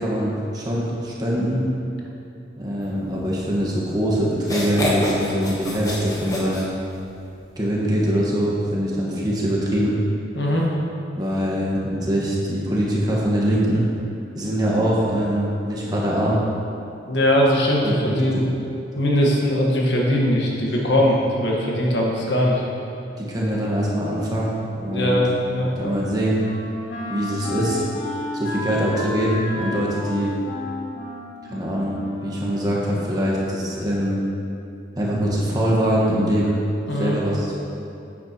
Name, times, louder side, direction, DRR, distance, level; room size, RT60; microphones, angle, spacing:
voice 1, 0.0-1.7 2.6-6.7 7.6-10.0 11.1-13.8 14.3-16.4 17.8-18.4 23.2-25.2 25.8-26.4 27.1-27.8 28.3-30.3 31.5-34.2 35.0-36.6 36.9-37.5, equal, 20° right, -5 dB, 1.4 m, -23 dB
sound 1, 3.8-3.9 4.4-7.2, equal, 20° left, 1.1 m, -26 dB
voice 2, 10.3-10.7 17.1-18.4 18.9-22.6 24.9-25.9 36.9-37.2, equal, 70° left, -3 dB, 1.5 m, -20 dB
Wind instrument woodwind instrument, 25.8-33.1, left 2 dB, 85° left, 1.9 m, -32 dB
9.6 x 8.9 x 3.0 m, 2.7 s
head